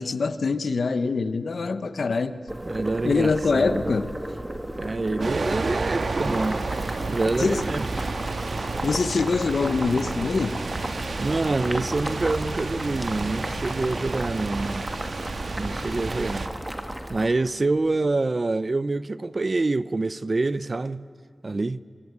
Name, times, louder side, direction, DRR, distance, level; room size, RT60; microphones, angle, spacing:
voice 1, 0.0-2.4 3.0-4.1 7.4-7.6 8.8-10.6, left 4 dB, 75° left, 1.1 m, -24 dB
Boiling, 2.5-17.2, right 1 dB, 15° right, 2.1 m, -34 dB
voice 2, 2.6-3.9 4.7-6.6 7.1-8.1 11.2-14.9 15.6-16.5 17.1-21.1 21.4-21.8, right 3 dB, 45° right, 0.6 m, -26 dB
sound 1, 5.2-16.5, right 3 dB, 75° right, 1.6 m, -31 dB
23.0 x 23.0 x 9.6 m
wide cardioid pair, 85°, 0 cm